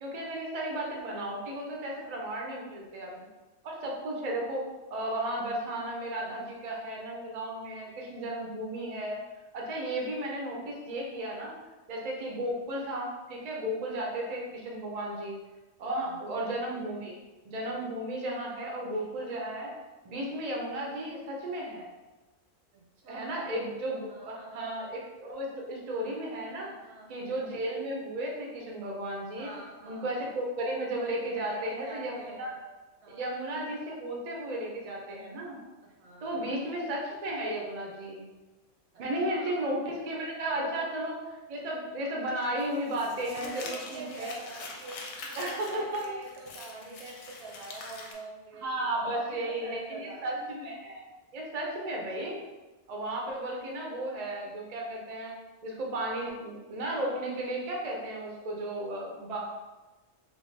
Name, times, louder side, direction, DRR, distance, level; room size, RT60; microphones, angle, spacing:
voice 1, 0.0-3.3 3.6-4.6 4.9-9.2 9.5-11.5 11.9-15.4 15.8-17.2 17.4-19.7 20.0-21.9 23.1-26.7 27.1-29.5 29.9-32.5 33.1-35.6 36.2-38.2 39.0-44.3 45.3-46.2 48.6-51.1 51.3-52.4 52.9-55.3 55.6-59.5, right 1 dB, 50° right, -1 dB, 0.5 m, -34 dB
voice 2, 15.9-16.2 17.6-17.8 22.7-23.5 24.1-24.7 26.6-27.1 29.4-30.1 30.9-32.7 33.0-33.4 35.8-36.6 38.9-39.8 40.5-40.8 43.2-50.5, right 2 dB, 65° right, -1 dB, 0.8 m, -46 dB
Crumpling crinkling, 42.6-48.1, left 3 dB, 70° left, 0.8 m, -44 dB
3.0 x 2.4 x 3.2 m, 1.2 s
omnidirectional pair, 1.3 m